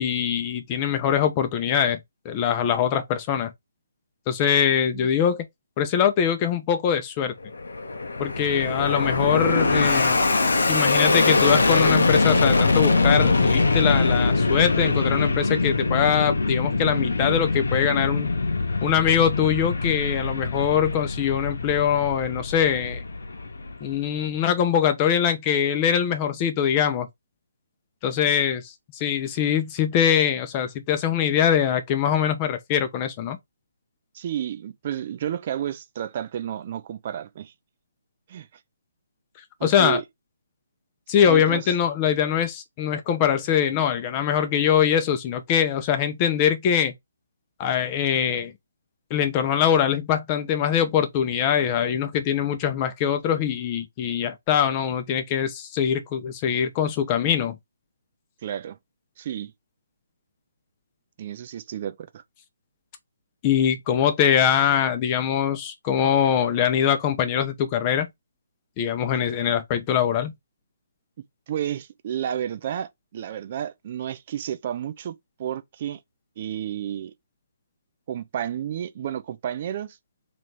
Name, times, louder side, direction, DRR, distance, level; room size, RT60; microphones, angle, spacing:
voice 1, 0.0-3.5 4.3-5.4 5.8-7.3 8.2-10.3 10.7-18.3 18.8-23.0 23.8-27.1 28.0-33.4 39.6-40.0 41.1-46.9 47.6-48.5 49.1-57.6 63.4-68.1 68.8-70.3, left 9 dB, 25° left, 0.7 m, -23 dB
Fixed-wing aircraft airplane, 7.4-24.0, left 3 dB, 75° left, 0.8 m, -23 dB
voice 2, 34.1-37.5 38.3-38.5 39.6-40.0 41.3-41.7 58.4-58.8 59.2-59.5 61.2-62.0 71.5-75.1 75.4-76.0 76.4-77.1 78.1-80.0, right 10 dB, 40° right, 0.5 m, -31 dB
3.2 x 3.1 x 3.9 m
figure-of-eight pair, 145°, 0 cm